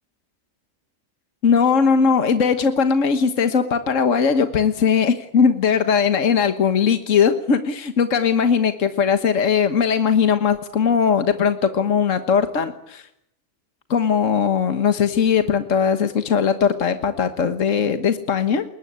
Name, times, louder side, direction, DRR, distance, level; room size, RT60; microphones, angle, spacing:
voice 1, 1.4-13.1 13.9-18.6, left 6 dB, 70° left, 8 dB, 1.7 m, -19 dB
30.0 x 21.5 x 8.9 m, 0.77 s
omnidirectional pair, 1.4 m